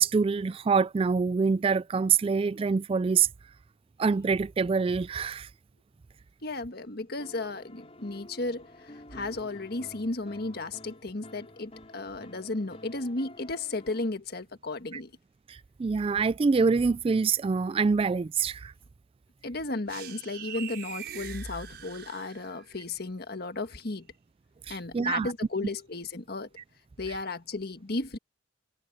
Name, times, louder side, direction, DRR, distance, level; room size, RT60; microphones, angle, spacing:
voice 1, 0.0-3.3 4.0-5.5 15.8-18.7 24.7-25.3, right 5 dB, 30° right, 0.3 m, -25 dB
voice 2, 6.4-15.1 19.4-24.1 24.7-26.5 27.0-28.2, left 2 dB, 55° left, 1.5 m, -34 dB
sound 1, 7.2-14.1, left 1 dB, 35° left, 4.5 m, -50 dB
sound 2, 19.9-22.8, right 6 dB, 60° right, 6.9 m, -42 dB
head